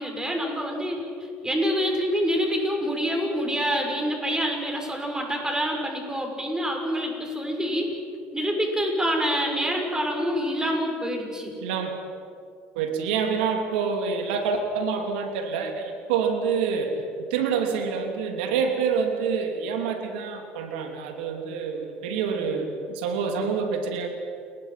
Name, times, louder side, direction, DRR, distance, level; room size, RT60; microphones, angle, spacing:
voice 1, 0.0-7.9 8.3-11.5, equal, 15° right, 2 dB, 6.7 m, -26 dB
voice 2, 11.6-12.0 12.7-16.9 17.3-24.1, right 6 dB, 90° right, 4 dB, 3.0 m, -27 dB
29.5 x 21.0 x 6.0 m, 2.4 s
supercardioid pair, 80°, 5 cm